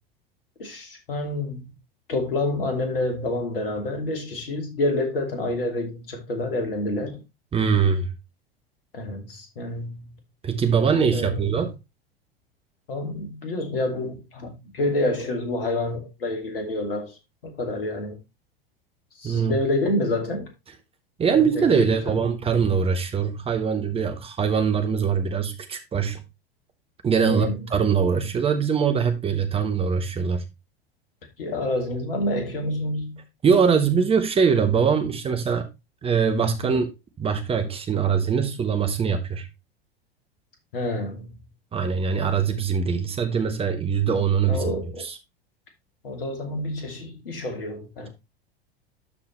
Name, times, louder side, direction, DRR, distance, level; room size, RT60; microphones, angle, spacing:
voice 1, 0.6-1.7 2.1-7.2 8.9-10.2 11.1-11.5 12.9-18.2 19.2-20.5 21.3-22.2 27.3-27.8 31.4-33.2 36.6-36.8 40.7-41.4 44.5-45.1 46.0-48.1, left 1 dB, 65° left, 2.7 m, -28 dB
voice 2, 7.5-8.1 10.4-11.7 19.2-19.5 21.2-26.2 27.0-30.4 33.4-35.7 36.0-36.9 37.2-39.5 41.7-44.6 45.0-45.2, right 6 dB, 20° right, 1.2 m, -22 dB
12.0 x 4.7 x 3.2 m
figure-of-eight pair, 85°, 30 cm